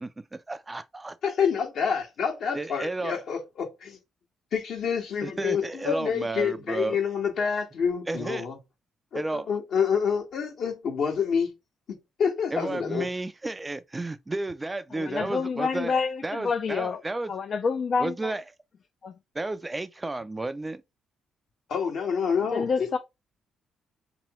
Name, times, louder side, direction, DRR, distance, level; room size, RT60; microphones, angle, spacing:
voice 1, 0.0-1.2 2.5-3.2 5.2-7.0 8.1-8.5 9.1-9.5 12.5-17.3 18.0-18.5 19.3-20.8, right 2 dB, 20° right, 0.3 m, -32 dB
voice 2, 1.2-4.0 4.5-8.6 9.1-11.5 11.9-13.0 21.7-22.9, left 6 dB, 70° left, 1.4 m, -28 dB
voice 3, 14.9-17.0 17.3-18.1 19.0-19.1 22.5-23.0, left 5 dB, 50° left, 0.4 m, -27 dB
3.6 x 3.0 x 3.0 m
cardioid pair, 90°, 0 cm